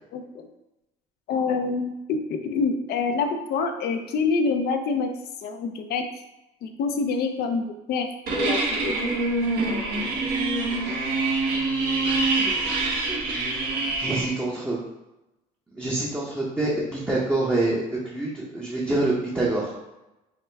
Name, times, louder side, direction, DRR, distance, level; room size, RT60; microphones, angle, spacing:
voice 1, 0.1-0.5 1.3-5.1 5.4-6.0 6.6-8.1 8.4-8.9, left 4 dB, 70° left, 6 dB, 0.5 m, -26 dB
sound 1, 8.3-14.3, right 3 dB, 70° right, 1.0 m, -25 dB
voice 2, 11.5-12.6 13.5-14.8 15.7-19.8, right 2 dB, 10° right, -6 dB, 0.7 m, -27 dB
4.7 x 2.1 x 3.3 m, 0.96 s
cardioid pair, 110°, 17 cm